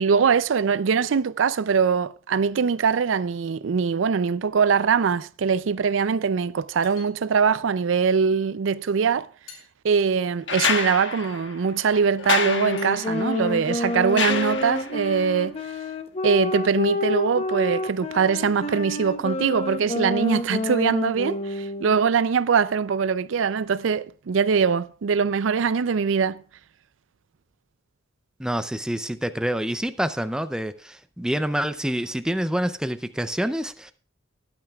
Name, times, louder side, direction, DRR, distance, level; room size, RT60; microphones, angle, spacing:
voice 1, 0.0-9.3 9.8-15.6 16.2-26.4, right 6 dB, 80° right, 0.4 m, -22 dB
sound 1, 6.4-6.5 6.8-7.5 8.5-8.6 9.1-9.2 9.5-9.7 10.6-10.8 12.8-12.9, left 6 dB, 85° left, 3.3 m, -47 dB
sound 2, 10.5-15.1 16.6-16.7, left 5 dB, 65° left, 1.3 m, -28 dB
sound 3, 12.4-22.1, left 2 dB, 30° left, 0.8 m, -29 dB
voice 2, 28.4-33.9, equal, 5° right, 0.5 m, -27 dB
20.0 x 8.9 x 2.3 m
head